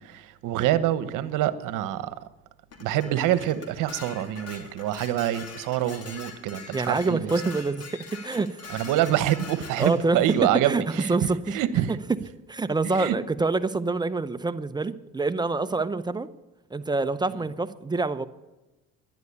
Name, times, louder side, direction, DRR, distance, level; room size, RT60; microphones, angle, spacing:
voice 1, 0.0-2.2 2.8-7.3 8.7-11.1 11.5-12.0 13.0-13.2, right 12 dB, 70° right, 14 dB, 1.1 m, -26 dB
Dishes pots and pans, 2.7-10.4, left 4 dB, 50° left, 2.8 m, -43 dB
voice 2, 6.7-8.7 9.8-10.8 11.1-11.6 12.5-16.3 16.7-18.3, right 3 dB, 15° right, 11 dB, 0.7 m, -26 dB
11.0 x 10.5 x 8.2 m, 1.1 s
supercardioid pair, 100°, 33 cm